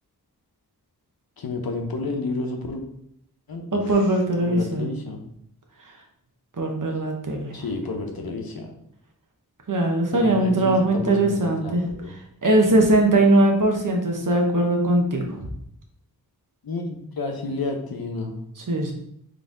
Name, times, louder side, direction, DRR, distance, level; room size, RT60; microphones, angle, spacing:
voice 1, 1.4-2.8 3.5-3.9 4.4-5.2 7.5-8.7 10.1-12.1 16.6-18.4, left 3 dB, 65° left, 3 dB, 0.8 m, -31 dB
voice 2, 3.7-4.9 6.6-7.5 9.7-11.8 12.4-15.2 18.6-18.9, right 2 dB, 55° right, 2 dB, 1.0 m, -20 dB
4.1 x 3.3 x 3.8 m, 0.72 s
wide cardioid pair, 75°, 39 cm